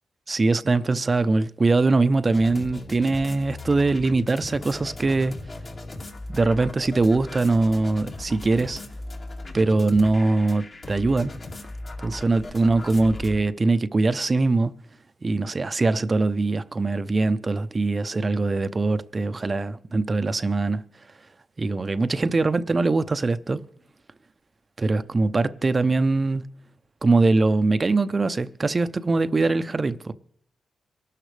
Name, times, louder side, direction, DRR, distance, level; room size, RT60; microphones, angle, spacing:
voice 1, 0.3-5.4 6.3-8.8 9.5-11.3 12.0-14.7 15.2-20.8 21.6-23.6 24.8-26.4 27.0-30.1, right 3 dB, 35° right, 0.7 m, -22 dB
sound 1, 2.3-13.4, left 2 dB, 45° left, 2.2 m, -38 dB
23.5 x 12.5 x 3.4 m
cardioid pair, 75°, 0 cm